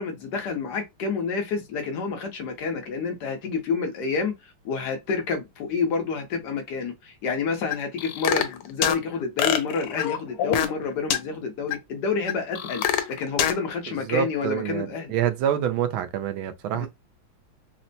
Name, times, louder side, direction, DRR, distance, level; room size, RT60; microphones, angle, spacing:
voice 1, 0.0-12.8 13.1-15.2 16.7-16.9, left 5 dB, 65° left, 1.1 m, -29 dB
sound 1, 7.7-9.0 9.4-10.8 11.1-11.2 11.7-11.8 12.3-13.6, left 10 dB, 85° left, 1.5 m, -25 dB
voice 2, 13.9-16.9, right 10 dB, 75° right, 1.3 m, -27 dB
4.2 x 2.0 x 2.6 m
omnidirectional pair, 2.3 m